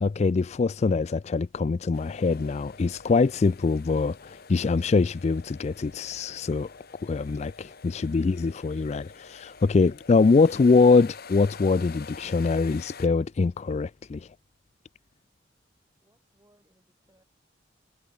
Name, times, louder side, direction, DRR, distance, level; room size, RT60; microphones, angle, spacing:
voice 1, 0.0-6.7 7.0-14.3, left 4 dB, 35° left, 0.3 m, -23 dB
sound 1, 1.9-13.1, left 5 dB, 55° left, 1.4 m, -47 dB
voice 2, 16.0-17.2, right 1 dB, 15° right, 6.3 m, -67 dB
head